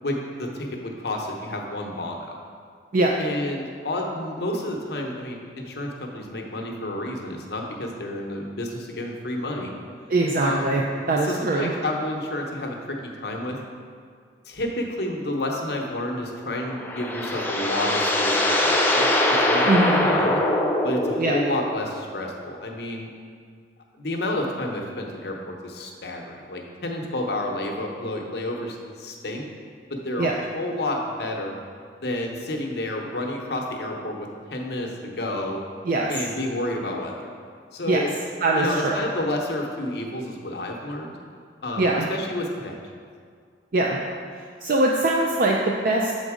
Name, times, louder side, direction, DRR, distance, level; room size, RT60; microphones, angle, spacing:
voice 1, 0.0-2.4 3.2-9.7 10.4-10.7 11.2-13.6 14.5-19.7 20.0-20.4 20.8-23.1 24.0-29.5 29.9-31.5 32.0-35.6 36.1-37.3 37.7-38.1 38.5-41.2 41.6-42.8, left 1 dB, 60° left, 1 dB, 0.8 m, -30 dB
voice 2, 10.1-10.8 11.1-11.7 19.7-20.1 21.2-21.4 30.2-30.3 35.9-36.2 37.9-38.0 38.4-39.0 41.8-42.1 43.7-44.0 44.6-46.1, right 2 dB, 50° right, -1 dB, 0.4 m, -22 dB
sound 1, 16.6-21.7, left 1 dB, 10° left, 0.5 m, -22 dB
7.1 x 4.0 x 4.9 m, 2.1 s
head